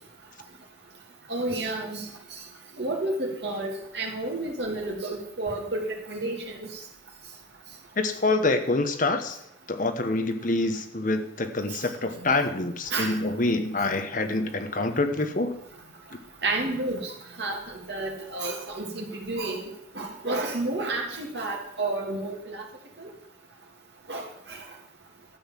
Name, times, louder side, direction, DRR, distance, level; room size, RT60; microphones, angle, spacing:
voice 1, 1.3-2.0 2.8-6.4 12.9-13.1 16.4-17.1 17.4-17.6 17.9-19.6 20.0-22.6 23.0-23.1 24.1-24.2, right 2 dB, 55° right, 1 dB, 2.8 m, -30 dB
voice 2, 8.0-9.4 9.7-15.5, left 2 dB, 40° left, 8 dB, 1.1 m, -26 dB
12.5 x 8.0 x 7.3 m, 0.74 s
head